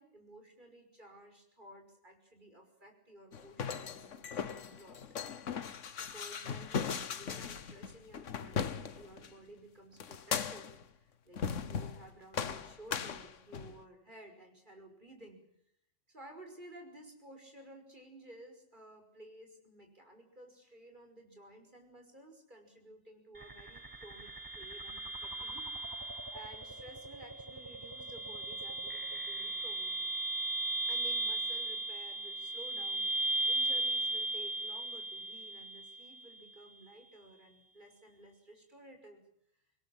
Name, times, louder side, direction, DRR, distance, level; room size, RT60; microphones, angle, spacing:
voice 1, 0.0-5.0 6.0-15.4 16.1-30.1 30.9-39.2, right 1 dB, 40° right, 5 dB, 6.0 m, -55 dB
sound 1, 3.3-9.3 10.0-10.8 11.4-12.1 12.3-13.8, left 6 dB, 75° left, 1.5 m, -38 dB
sound 2, 23.4-36.4, right 2 dB, 20° right, 0.9 m, -37 dB
26.0 x 21.0 x 7.4 m, 0.72 s
omnidirectional pair, 1.3 m